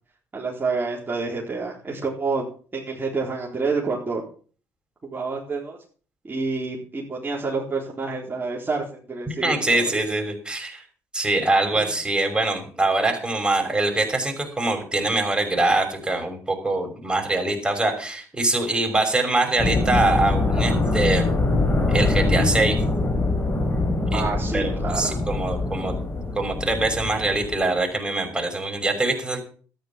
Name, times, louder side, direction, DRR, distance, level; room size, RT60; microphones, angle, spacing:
voice 1, 0.3-2.5 2.7-4.2 5.1-5.8 6.2-10.0 11.7-11.9 24.1-25.2, right 4 dB, 30° right, -4 dB, 4.2 m, -28 dB
voice 2, 9.3-10.8 11.1-21.2 21.9-22.8 24.1-24.2 24.5-26.0 26.3-29.4, right 2 dB, 10° right, 3 dB, 6.0 m, -23 dB
sound 1, 19.6-27.8, left 2 dB, 35° left, 5.2 m, -23 dB
13.5 x 10.5 x 6.1 m, 0.42 s
hypercardioid pair, 60°, 7 cm